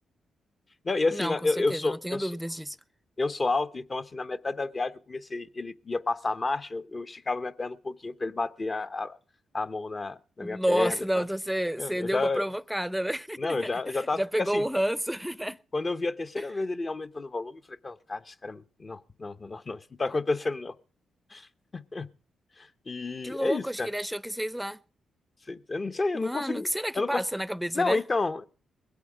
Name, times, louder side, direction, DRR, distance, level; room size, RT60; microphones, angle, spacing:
voice 1, 0.8-2.3 3.2-9.2 9.5-11.2 11.8-12.4 13.4-14.6 15.7-20.7 21.3-21.5 21.7-22.1 22.6-23.9 25.5-26.7 26.9-27.2 27.7-28.5, left 3 dB, 35° left, 0.9 m, -30 dB
voice 2, 1.7-2.8 10.4-15.6 23.2-24.8 26.1-28.0, equal, 5° right, 0.6 m, -30 dB
20.5 x 8.4 x 4.9 m
cardioid pair, 65°, 0 cm